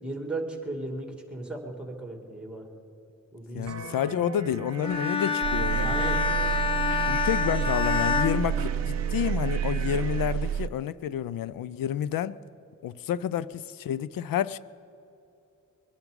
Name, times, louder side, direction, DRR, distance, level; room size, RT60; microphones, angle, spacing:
voice 1, 0.0-2.7 3.3-3.7 5.7-6.2, right 2 dB, 5° right, 2.4 m, -36 dB
voice 2, 3.5-6.0 7.1-12.4 12.8-14.6, left 10 dB, 85° left, 0.5 m, -29 dB
sound 1, 3.7-10.3, right 6 dB, 50° right, 0.7 m, -40 dB
Bowed string instrument, 4.8-9.3, left 5 dB, 15° left, 0.8 m, -28 dB
sound 2, 5.4-10.7, right 9 dB, 85° right, 0.5 m, -29 dB
22.5 x 11.0 x 5.3 m
wide cardioid pair, 105°, 33 cm